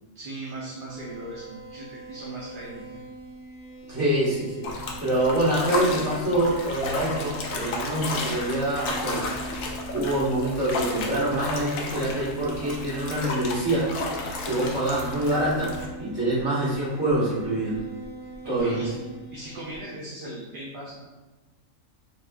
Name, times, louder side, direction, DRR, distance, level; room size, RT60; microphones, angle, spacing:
voice 1, 0.1-2.7 2.9-3.0 18.4-18.9 19.3-21.1, right 1 dB, 55° right, -5 dB, 0.6 m, -38 dB
sound 1, 0.9-19.8, right 2 dB, 45° left, 0.9 m, -42 dB
voice 2, 3.9-4.7 5.0-9.2 9.9-13.9 14.4-15.7 16.0-17.7 18.5-18.9, right 1 dB, 20° right, -9 dB, 1.3 m, -25 dB
sound 2, 4.6-15.9, left 3 dB, 85° left, 1.1 m, -33 dB
6.1 x 2.4 x 2.3 m, 1.2 s
omnidirectional pair, 1.4 m